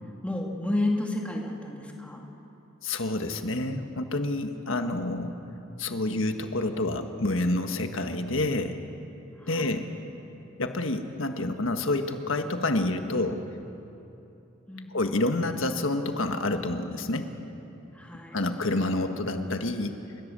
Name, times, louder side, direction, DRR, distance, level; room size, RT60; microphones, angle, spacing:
voice 1, 0.2-2.2 9.4-9.8 14.7-14.9 17.9-18.4, left 1 dB, 5° left, -1 dB, 2.0 m, -31 dB
voice 2, 2.8-5.3 5.8-8.8 9.5-9.8 10.6-13.4 14.9-17.3 18.3-20.0, left 2 dB, 65° left, 6 dB, 1.6 m, -28 dB
29.5 x 16.5 x 7.5 m, 2.9 s
head